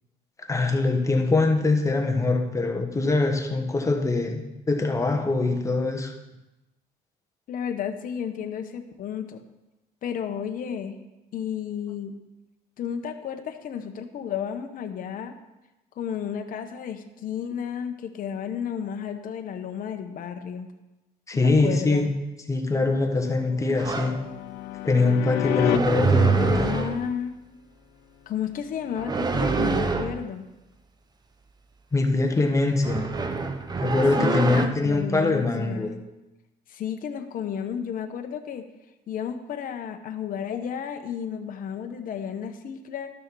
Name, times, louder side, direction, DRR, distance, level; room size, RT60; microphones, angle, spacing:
voice 1, 0.4-4.4 4.7-6.1 21.3-22.1 22.5-24.2 24.8-26.5 31.9-33.1 33.8-35.9, left 3 dB, 20° left, 3 dB, 1.4 m, -23 dB
voice 2, 7.5-9.4 10.0-11.0 11.3-12.1 12.8-15.3 16.0-20.7 21.4-22.1 26.3-27.3 28.3-30.4 34.2-35.9 36.7-38.6 39.1-43.1, left 8 dB, 55° left, 6 dB, 1.0 m, -32 dB
sound 1, 22.9-25.8 28.7-30.0, left 12 dB, 90° left, 0.5 m, -31 dB
sound 2, 23.8-24.2 25.5-27.1 29.0-30.2 32.8-34.7, right 4 dB, 25° right, 0.7 m, -25 dB
12.5 x 6.3 x 4.7 m, 1.0 s
cardioid pair, 110°, 17 cm